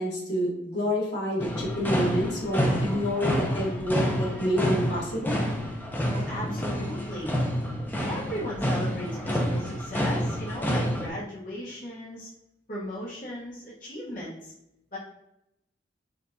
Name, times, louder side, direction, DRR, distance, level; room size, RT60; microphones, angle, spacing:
voice 1, 0.0-5.4, equal, 75° left, -4 dB, 1.5 m, -28 dB
sound 1, 1.4-11.1, equal, 10° left, 0.6 m, -28 dB
voice 2, 6.0-7.4 8.1-12.3 12.7-14.5 14.9-15.0, equal, 45° left, -7 dB, 1.2 m, -36 dB
5.3 x 3.4 x 2.7 m, 0.81 s
head